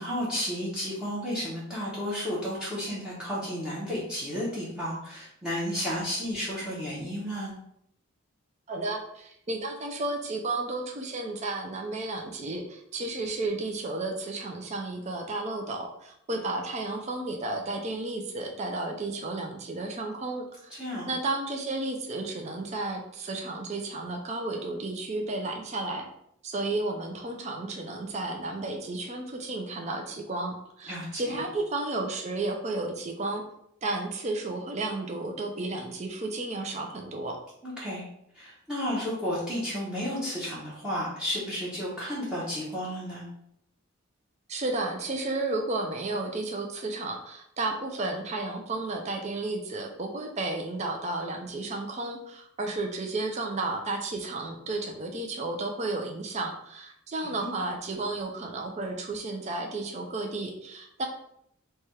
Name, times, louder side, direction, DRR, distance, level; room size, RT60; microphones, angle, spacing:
voice 1, 0.0-7.5 20.7-21.1 30.9-31.4 37.6-38.1 38.3-43.2 57.4-57.5, equal, 5° right, -9 dB, 0.8 m, -32 dB
voice 2, 8.7-20.7 21.1-26.0 26.4-33.4 33.8-37.4 44.5-61.1, right 2 dB, 30° right, 2 dB, 0.4 m, -32 dB
3.2 x 2.3 x 4.2 m, 0.73 s
head